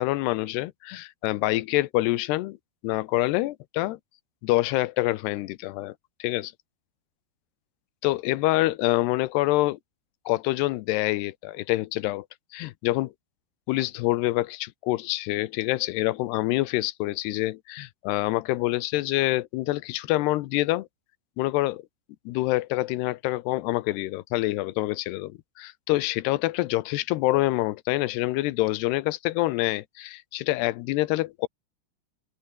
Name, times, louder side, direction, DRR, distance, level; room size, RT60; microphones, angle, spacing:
voice 1, 0.0-2.6 2.8-4.0 4.4-5.9 6.2-6.5 8.0-9.8 10.3-12.3 12.5-13.1 13.7-20.9 21.4-21.8 22.3-31.5, left 18 dB, 80° left, 2.9 m, -26 dB
open air
omnidirectional pair, 4.8 m